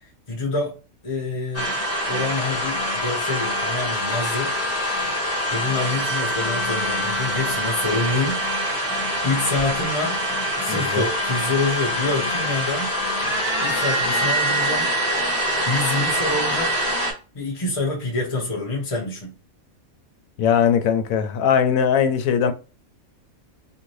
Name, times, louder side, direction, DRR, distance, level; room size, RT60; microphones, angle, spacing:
voice 1, 0.3-0.7 1.0-4.5 5.5-8.4 9.2-10.2 10.6-12.9 13.6-14.9 15.7-16.7 17.3-19.3, left 2 dB, 35° left, 0.6 m, -26 dB
sound 1, 1.5-17.1, equal, 10° left, 1.4 m, -24 dB
voice 2, 10.7-11.0 20.4-22.5, left 7 dB, 80° left, 1.0 m, -20 dB
2.6 x 2.6 x 3.1 m
omnidirectional pair, 1.4 m